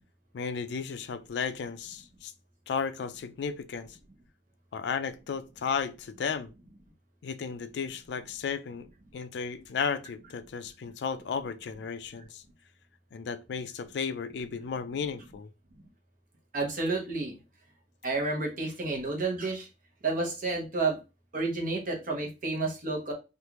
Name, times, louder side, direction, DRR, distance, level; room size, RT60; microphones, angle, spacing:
voice 1, 0.3-2.3 2.7-4.0 4.7-6.5 7.2-8.9 9.1-12.4 13.1-15.5, left 6 dB, 70° left, 0.4 m, -34 dB
voice 2, 16.5-17.3 18.0-19.7 20.0-21.0 21.3-23.1, right 3 dB, 50° right, 1.0 m, -30 dB
3.1 x 2.5 x 3.0 m
head